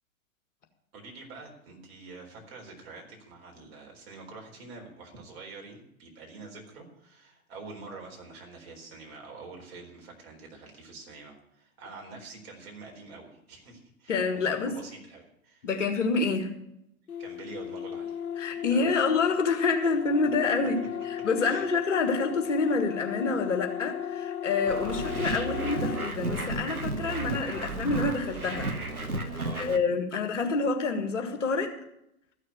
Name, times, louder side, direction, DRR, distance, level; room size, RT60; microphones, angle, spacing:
voice 1, 0.9-15.7 17.2-18.2 18.7-19.0 20.6-20.7 21.4-21.7 29.4-29.7, right 3 dB, 45° right, 1 dB, 4.2 m, -46 dB
voice 2, 14.1-14.7 15.6-16.5 18.4-20.8 21.0-28.7 29.3-31.7, left 4 dB, 60° left, 4 dB, 2.0 m, -27 dB
sound 1, 17.1-26.1, left 9 dB, 85° left, 0.6 m, -35 dB
sound 2, 24.7-29.8, right 2 dB, 90° right, 1.0 m, -33 dB
14.0 x 6.5 x 9.6 m, 0.79 s
figure-of-eight pair, 110°, 42 cm